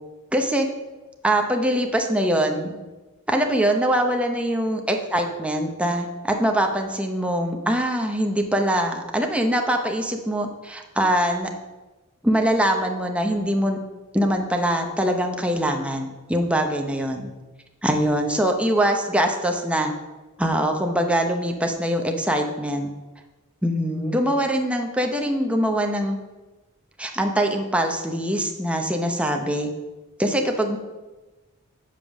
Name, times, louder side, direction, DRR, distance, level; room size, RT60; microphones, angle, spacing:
voice 1, 0.3-0.7 1.2-2.8 3.3-11.5 12.2-13.8 14.1-17.3 17.8-19.9 20.4-22.9 23.6-26.2 27.0-29.7 30.2-30.8, right 1 dB, 5° right, 3 dB, 0.8 m, -23 dB
7.5 x 5.2 x 6.2 m, 1.1 s
head